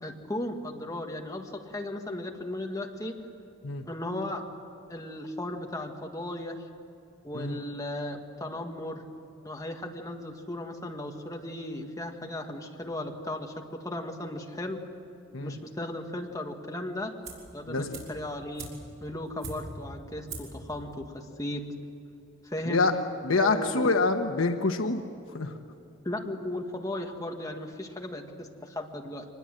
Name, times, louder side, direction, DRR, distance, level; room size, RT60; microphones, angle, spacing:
voice 1, 0.0-3.1 3.9-4.4 4.9-6.5 7.2-9.0 9.4-13.5 13.8-14.8 15.4-17.1 17.5-18.7 19.0-21.6 22.4-22.9 23.4-23.8 26.0-29.3, left 1 dB, 15° left, 3 dB, 1.7 m, -36 dB
sound 1, 17.2-17.6 17.9-19.9 20.3-20.6 20.9-21.0, right 2 dB, 80° right, 5.7 m, -41 dB
voice 2, 17.7-18.0 22.7-25.0 25.3-25.5, left 3 dB, 80° left, 5 dB, 1.1 m, -26 dB
25.5 x 20.5 x 7.7 m, 2.8 s
head